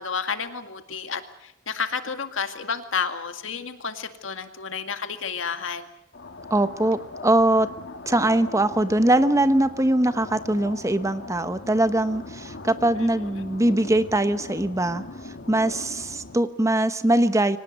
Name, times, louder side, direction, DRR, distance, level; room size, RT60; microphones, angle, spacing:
voice 1, 0.0-5.9 13.0-13.1 13.4-13.5, left 5 dB, 80° left, 8 dB, 2.1 m, -31 dB
sound 1, 6.1-16.4, left 2 dB, 60° left, 1.6 m, -40 dB
voice 2, 6.5-7.7 8.1-15.0 15.5-17.6, right 1 dB, 15° right, 12 dB, 1.0 m, -22 dB
24.5 x 19.0 x 8.2 m, 0.80 s
head